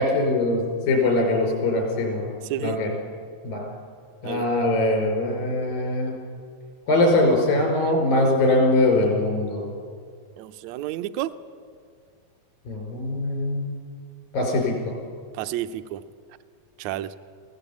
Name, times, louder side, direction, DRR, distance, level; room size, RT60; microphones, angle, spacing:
voice 1, 0.0-2.3 2.6-2.9 3.4-3.7 4.2-6.1 6.9-9.7 12.7-13.7 14.3-14.7, left 2 dB, 85° left, 1 dB, 6.9 m, -22 dB
voice 2, 10.4-11.3 15.4-16.0 16.8-17.1, right 13 dB, 80° right, 12 dB, 1.7 m, -30 dB
24.5 x 17.0 x 8.5 m, 2.1 s
omnidirectional pair, 4.0 m